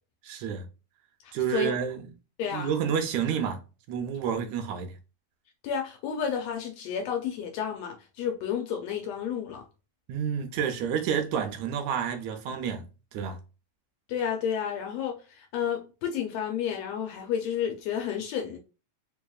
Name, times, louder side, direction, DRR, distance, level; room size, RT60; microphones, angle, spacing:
voice 1, 0.2-0.7 1.3-2.0 2.5-3.6 3.9-4.9 10.1-13.4, right 7 dB, 80° right, 1.9 m, -29 dB
voice 2, 1.2-1.8 2.4-2.7 5.6-9.6 14.1-18.6, left 7 dB, 75° left, 1.6 m, -31 dB
4.6 x 2.9 x 2.3 m
omnidirectional pair, 3.3 m